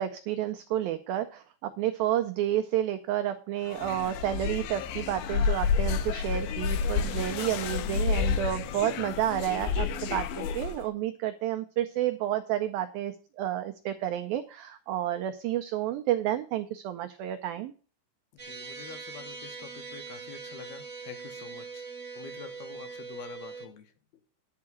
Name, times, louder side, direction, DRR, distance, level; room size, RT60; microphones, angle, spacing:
voice 1, 0.0-17.7, right 12 dB, 90° right, 8 dB, 2.0 m, -30 dB
sound 1, 3.7-10.8, left 6 dB, 90° left, 3.1 m, -30 dB
voice 2, 18.3-21.9 22.2-23.9, left 7 dB, 70° left, 8 dB, 2.8 m, -47 dB
sound 2, 18.4-23.7, right 4 dB, 65° right, 0.7 m, -42 dB
11.0 x 4.7 x 7.7 m, 0.37 s
omnidirectional pair, 5.1 m